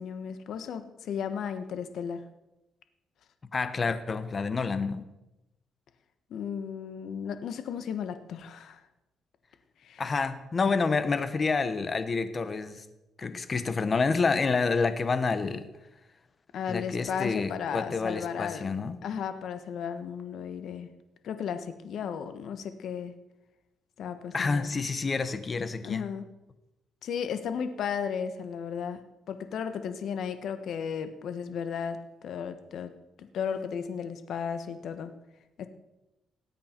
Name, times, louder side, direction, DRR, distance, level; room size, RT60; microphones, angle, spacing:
voice 1, 0.0-2.2 6.3-8.8 9.8-10.0 16.5-18.7 19.0-20.9 21.2-23.1 24.0-24.7 25.8-26.2 27.0-29.0 29.3-32.9 33.2-35.1 35.6-35.7, left 7 dB, 70° left, 9 dB, 1.2 m, -34 dB
voice 2, 3.5-5.1 10.0-12.9 13.2-15.7 16.7-19.0 24.3-26.0, left 4 dB, 35° left, 11 dB, 1.1 m, -28 dB
19.0 x 8.6 x 4.5 m, 0.98 s
cardioid pair, 90°, 0 cm